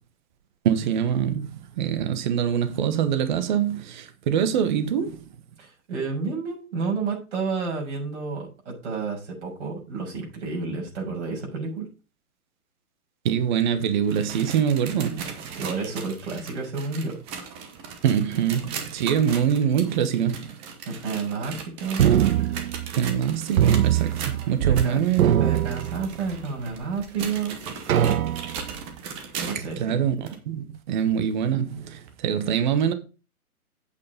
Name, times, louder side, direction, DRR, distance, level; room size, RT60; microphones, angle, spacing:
voice 1, 0.6-5.2 13.2-15.3 18.0-20.5 23.0-25.3 29.8-30.2 30.5-32.9, right 8 dB, 30° right, 1.2 m, -24 dB
voice 2, 5.6-11.9 15.5-17.2 20.9-22.1 24.6-25.0 25.4-27.6 29.4-30.0, right 4 dB, 50° right, 6.3 m, -30 dB
sound 1, 13.9-29.8 30.3-30.4 31.1-31.2 32.1-32.2, right 6 dB, 15° right, 0.8 m, -38 dB
sound 2, 22.0-23.2 23.6-24.9 25.1-26.4 27.0-27.1 27.9-28.7, right 10 dB, 70° right, 0.6 m, -22 dB
8.5 x 6.5 x 5.3 m
hypercardioid pair, 145°, 43 cm